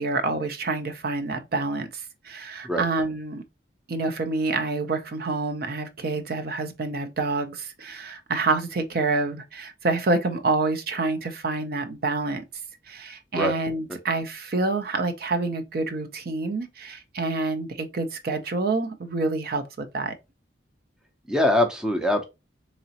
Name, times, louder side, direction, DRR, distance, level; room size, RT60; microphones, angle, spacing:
voice 1, 0.0-3.4 3.9-12.4 12.9-20.1, right 3 dB, 55° right, 0.5 m, -27 dB
voice 2, 21.3-22.2, left 1 dB, 5° right, 0.5 m, -22 dB
3.8 x 3.0 x 2.8 m
head